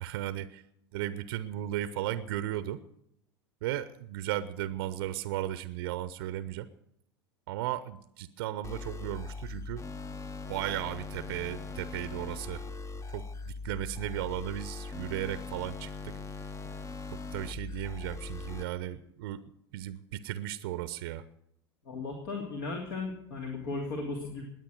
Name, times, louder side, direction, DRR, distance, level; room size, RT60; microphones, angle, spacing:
voice 1, 0.0-0.6 0.9-2.8 3.6-6.7 7.5-9.9 10.5-12.6 13.1-13.3 13.6-16.2 17.1-21.2, right 13 dB, 60° right, 15 dB, 0.7 m, -35 dB
sound 1, 8.6-18.6, left 4 dB, 20° left, 0.9 m, -40 dB
voice 2, 21.8-24.4, left 3 dB, 60° left, 1 dB, 2.8 m, -36 dB
20.0 x 8.9 x 6.4 m, 0.75 s
figure-of-eight pair, 80°, 14 cm